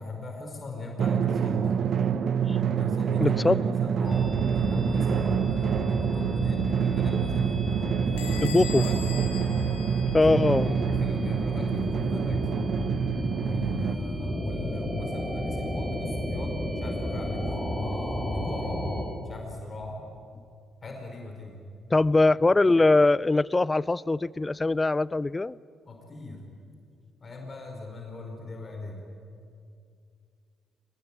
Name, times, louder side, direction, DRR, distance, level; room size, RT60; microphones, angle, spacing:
voice 1, 0.0-1.8 2.7-8.9 10.3-12.5 13.4-18.8 19.2-20.0 20.8-21.6 25.8-26.5 27.2-29.1, left 2 dB, 40° left, 2 dB, 4.9 m, -39 dB
Drum, 1.0-14.0, right 8 dB, 55° right, 1.0 m, -27 dB
voice 2, 3.2-3.7 8.4-8.8 10.1-10.8 21.9-25.6, left 2 dB, 20° left, 23 dB, 0.5 m, -22 dB
sound 1, 4.0-19.0, equal, 5° right, 6.7 m, -32 dB
Bell / Door, 8.2-10.7, left 10 dB, 85° left, 2.5 m, -41 dB
24.0 x 20.0 x 9.2 m, 2.4 s
hypercardioid pair, 50°, 0 cm